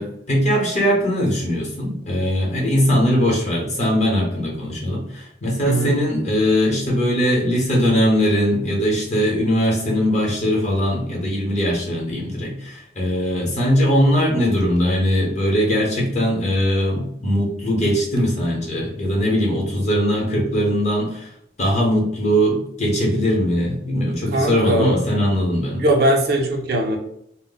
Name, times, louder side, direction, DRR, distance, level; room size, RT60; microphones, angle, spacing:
voice 1, 0.0-21.3 21.6-25.8, equal, 35° left, -2 dB, 0.8 m, -20 dB
voice 2, 5.6-6.0 24.3-24.9 25.8-27.0, right 1 dB, 55° right, 1 dB, 0.5 m, -20 dB
2.1 x 2.0 x 3.8 m, 0.72 s
head